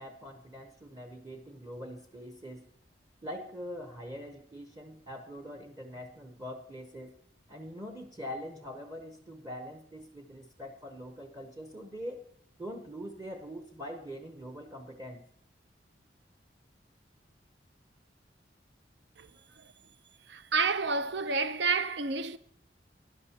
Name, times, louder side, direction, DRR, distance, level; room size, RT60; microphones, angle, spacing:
voice 1, 0.0-2.7 3.2-7.2 7.5-12.2 12.6-15.2, equal, 20° right, 0.8 m, -43 dB
voice 2, 20.3-22.4, right 4 dB, 80° right, 0.6 m, -29 dB
18.0 x 11.0 x 2.8 m
head